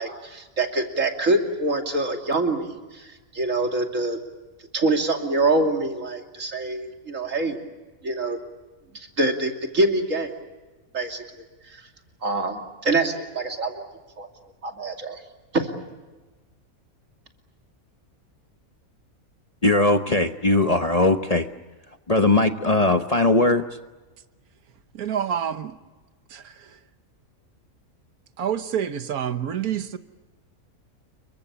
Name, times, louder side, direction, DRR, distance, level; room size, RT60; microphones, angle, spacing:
voice 1, 0.0-4.2 4.7-7.6 8.0-8.4 9.2-10.3 10.9-11.2 11.7-11.8 12.2-13.8 14.2-14.3 14.6-15.2 15.5-15.7, right 2 dB, 60° right, 3 dB, 3.1 m, -25 dB
voice 2, 19.6-21.5 22.1-23.6, left 2 dB, 30° left, 7 dB, 1.0 m, -19 dB
voice 3, 24.9-25.8 26.3-26.8 28.4-30.0, right 9 dB, 85° right, 10 dB, 1.5 m, -28 dB
29.0 x 24.0 x 7.0 m, 1.2 s
omnidirectional pair, 1.5 m